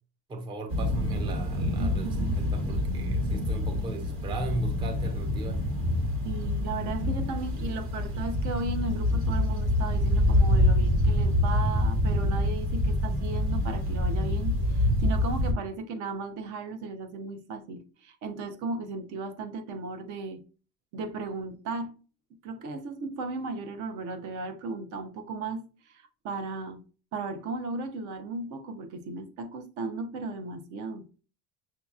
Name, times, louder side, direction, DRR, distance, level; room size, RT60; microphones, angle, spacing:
voice 1, 0.3-5.6, right 2 dB, 15° right, 0.4 m, -37 dB
sound 1, 0.7-15.5, left 1 dB, 45° right, 1.4 m, -26 dB
voice 2, 1.8-2.4 6.2-20.4 20.9-21.9 22.4-26.8 27.1-31.0, right 3 dB, 65° right, 0.8 m, -36 dB
6.2 x 2.8 x 2.4 m
cardioid pair, 165°, 32 cm